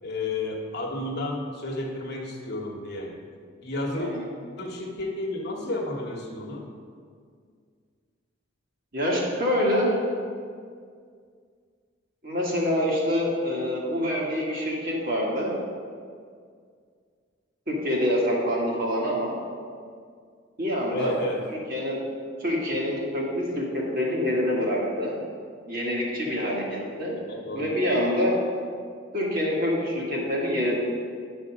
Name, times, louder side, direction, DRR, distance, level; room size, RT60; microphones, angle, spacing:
voice 1, 0.0-3.2 3.6-4.1 4.6-6.7 20.9-21.5 27.3-27.7, left 2 dB, 60° left, 0 dB, 1.1 m, -32 dB
voice 2, 4.0-4.3 8.9-10.0 12.2-15.6 17.7-19.4 20.6-21.2 21.5-22.0 22.4-25.2 25.7-27.2 27.5-28.4 29.1-30.8, equal, 50° right, -4 dB, 1.9 m, -26 dB
9.5 x 5.4 x 4.9 m, 2.1 s
head